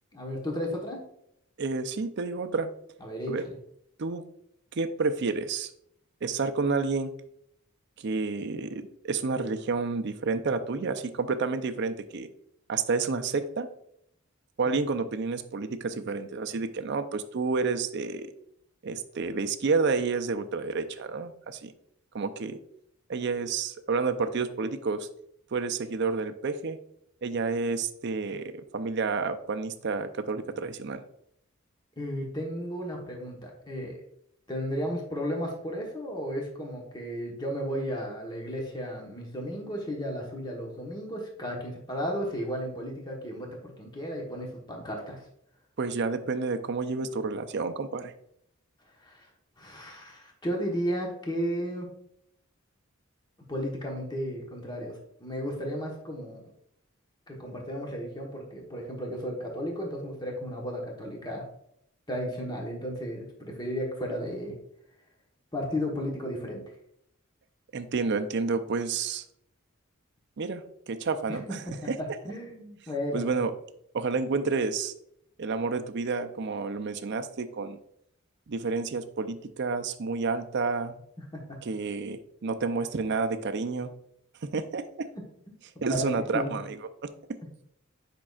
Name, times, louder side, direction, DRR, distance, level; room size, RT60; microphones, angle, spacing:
voice 1, 0.1-1.1 3.0-3.5 32.0-34.0 34.5-45.2 49.0-49.3 49.6-51.9 53.5-56.4 57.3-61.4 62.1-64.6 65.5-66.6 71.3-73.3 81.2-81.6 85.1-86.6, equal, 20° left, 0 dB, 1.1 m, -34 dB
voice 2, 1.6-2.7 3.3-3.4 4.0-4.2 4.7-5.7 6.2-7.1 8.0-12.3 12.7-13.7 14.6-18.3 18.8-21.7 22.1-22.6 23.1-25.1 25.5-26.8 27.2-31.0 45.8-48.1 67.7-69.2 70.4-72.0 73.1-73.5 73.9-74.9 75.4-77.8 78.5-81.0 81.6-83.9 84.4-85.1 85.8-86.8 87.0-87.4, right 4 dB, 55° right, 9 dB, 0.5 m, -30 dB
8.6 x 5.3 x 2.4 m, 0.73 s
head